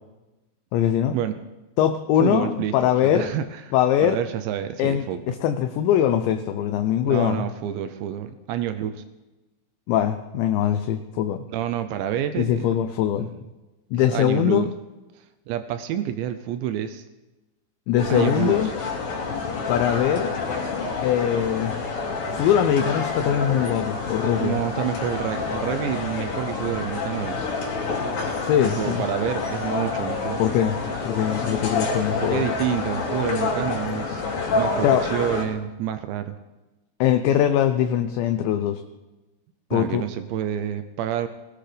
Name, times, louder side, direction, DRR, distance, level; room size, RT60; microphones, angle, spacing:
voice 1, 0.7-1.2 1.8-3.3 3.7-4.2 4.8-7.5 9.9-11.4 12.4-13.3 13.9-14.7 17.9-18.7 19.7-20.4 21.0-21.8 22.3-24.6 28.4-29.0 30.4-30.8 31.0-32.4 34.8-35.1 37.0-38.8 39.7-40.0, left 10 dB, 80° left, 7 dB, 2.7 m, -22 dB
voice 2, 2.2-2.8 3.0-3.6 4.0-5.2 7.1-9.0 11.5-12.7 14.1-14.7 15.5-17.0 18.1-18.7 24.4-27.5 28.6-30.4 32.2-34.2 34.5-36.4 39.7-41.3, right 10 dB, 80° right, 9 dB, 2.6 m, -28 dB
sound 1, 18.0-35.4, left 4 dB, 50° left, 3.7 m, -28 dB
20.0 x 17.5 x 3.4 m, 1.1 s
omnidirectional pair, 5.7 m